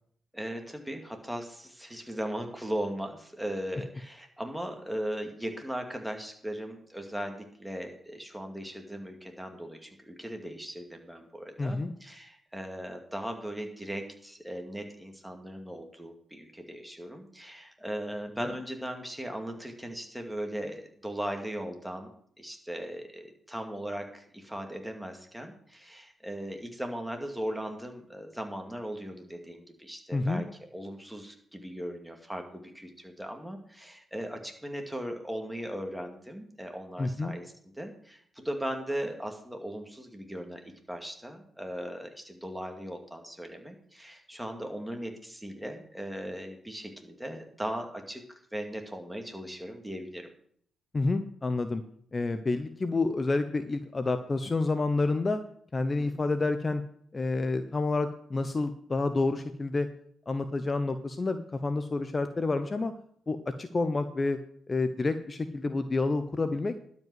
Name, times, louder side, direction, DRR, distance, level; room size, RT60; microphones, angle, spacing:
voice 1, 0.3-22.1 22.4-37.5 37.7-40.6 40.9-48.2 48.5-50.3 56.0-56.2, equal, 5° right, 3 dB, 2.3 m, -38 dB
voice 2, 11.6-11.9 18.4-18.5 30.1-30.4 37.0-37.3 50.9-51.8 52.1-55.4 55.7-56.8 57.1-59.9 60.3-62.9 63.3-64.4 64.7-66.7, left 3 dB, 35° left, 10 dB, 0.8 m, -29 dB
12.0 x 5.4 x 7.7 m, 0.63 s
cardioid pair, 70°, 0 cm